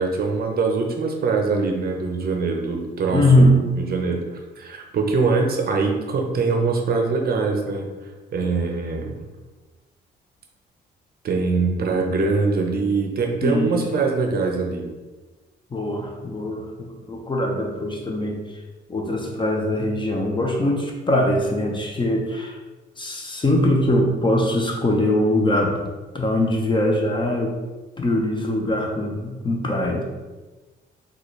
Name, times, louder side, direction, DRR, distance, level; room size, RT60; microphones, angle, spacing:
voice 1, 0.0-4.2 4.6-7.9 8.3-9.2 11.2-14.9, right 4 dB, 50° right, 2 dB, 0.6 m, -23 dB
voice 2, 3.1-3.7 13.4-13.8 15.7-18.6 18.9-22.6 23.0-25.8 26.1-27.5 28.0-30.0, left 1 dB, 25° left, 1 dB, 0.6 m, -22 dB
3.9 x 2.4 x 3.1 m, 1.2 s
cardioid pair, 90°, 20 cm